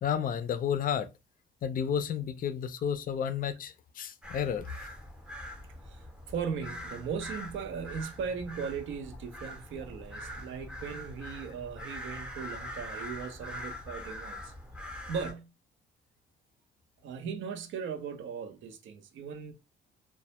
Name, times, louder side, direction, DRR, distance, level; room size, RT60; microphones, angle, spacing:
voice 1, 0.0-1.1 1.6-4.7, left 8 dB, 45° left, 0.4 m, -31 dB
sound 1, 4.2-15.3, left 1 dB, 5° right, 0.6 m, -43 dB
voice 2, 5.9-14.5 15.1-15.5 17.0-19.5, right 6 dB, 75° right, 0.5 m, -38 dB
2.1 x 2.0 x 2.8 m
cardioid pair, 90°, 20 cm